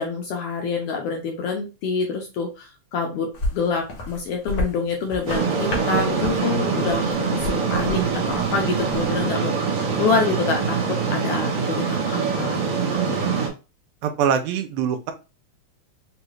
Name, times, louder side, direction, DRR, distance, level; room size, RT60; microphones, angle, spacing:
voice 1, 0.0-10.8 11.1-12.6, left 5 dB, 75° left, 2 dB, 1.4 m, -27 dB
sound 1, 3.3-9.3, left 1 dB, 60° left, 1.0 m, -33 dB
sound 2, 5.3-13.5, right 5 dB, 65° right, 1.6 m, -24 dB
voice 2, 14.0-15.1, right 8 dB, 85° right, 7 dB, 2.1 m, -23 dB
5.0 x 2.3 x 3.1 m, 0.29 s
omnidirectional pair, 3.4 m